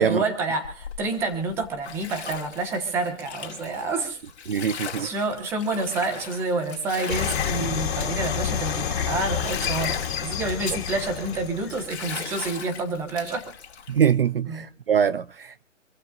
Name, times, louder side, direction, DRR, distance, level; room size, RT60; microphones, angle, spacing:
voice 1, 0.0-4.2 4.7-13.5 14.5-14.6, right 3 dB, 5° right, 1.2 m, -28 dB
Bathtub (filling or washing), 0.6-14.1, left 7 dB, 60° left, 2.5 m, -38 dB
voice 2, 4.5-5.1 13.9-15.6, right 8 dB, 50° right, 0.6 m, -23 dB
sound 1, 7.1-12.2, left 8 dB, 40° left, 3.4 m, -29 dB
26.5 x 15.0 x 2.5 m
hypercardioid pair, 170°, 37 cm